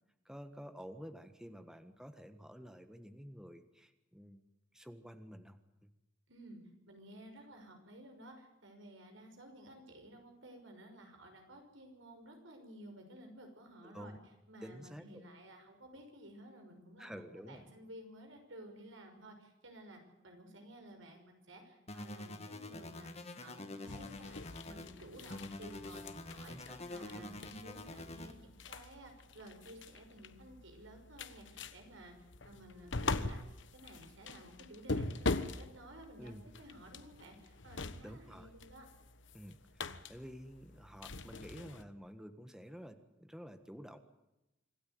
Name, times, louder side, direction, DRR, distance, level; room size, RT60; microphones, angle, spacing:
voice 1, 0.2-4.4 4.7-5.9 13.8-14.2 14.6-15.2 17.0-17.6 26.5-26.8 27.1-27.4 27.7-27.8 36.2-36.4 38.0-38.5 39.3-44.0, equal, 5° right, 9 dB, 1.4 m, -50 dB
voice 2, 6.3-6.6 6.9-14.1 14.5-24.4 24.6-32.1 32.5-33.4 33.7-38.9, right 1 dB, 75° right, 4 dB, 5.9 m, -54 dB
sound 1, 21.9-24.9 25.3-28.3, left 2 dB, 35° left, 1.8 m, -46 dB
sound 2, 23.9-41.8, left 3 dB, 65° left, 1.2 m, -43 dB
26.0 x 13.0 x 9.3 m, 0.98 s
head